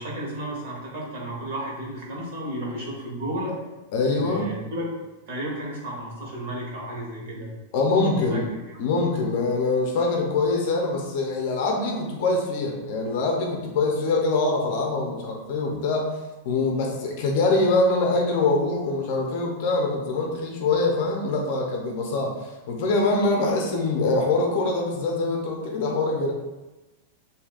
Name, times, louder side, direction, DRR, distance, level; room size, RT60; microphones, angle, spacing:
voice 1, 0.0-3.5 4.0-4.8 5.3-7.5 8.1-8.8, right 1 dB, 50° right, -4 dB, 1.4 m, -33 dB
voice 2, 3.9-4.5 7.7-8.5 8.8-16.1 16.4-26.3, left 3 dB, 40° left, 0 dB, 0.7 m, -24 dB
6.8 x 2.7 x 2.4 m, 1.1 s
supercardioid pair, 180°, 0 cm